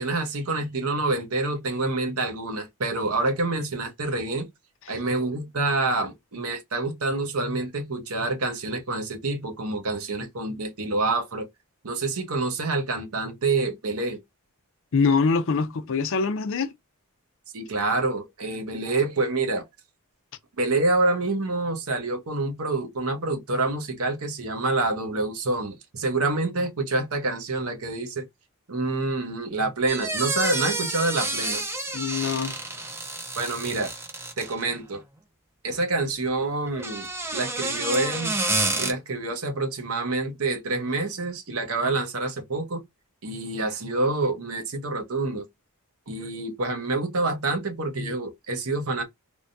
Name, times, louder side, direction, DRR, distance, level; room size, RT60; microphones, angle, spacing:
voice 1, 0.0-4.5 4.9-11.5 11.8-14.2 17.5-19.6 20.6-28.2 28.7-31.6 33.4-33.9 34.4-35.0 35.6-37.1 37.3-38.4 38.8-42.8 43.2-45.4 46.1-49.0, right 2 dB, 70° right, 0.9 m, -27 dB
voice 2, 14.9-16.7 31.9-32.6, left 5 dB, 60° left, 0.5 m, -24 dB
sound 1, 29.9-34.7 36.7-38.9, right 2 dB, 10° right, 0.4 m, -29 dB
3.4 x 2.2 x 2.5 m
head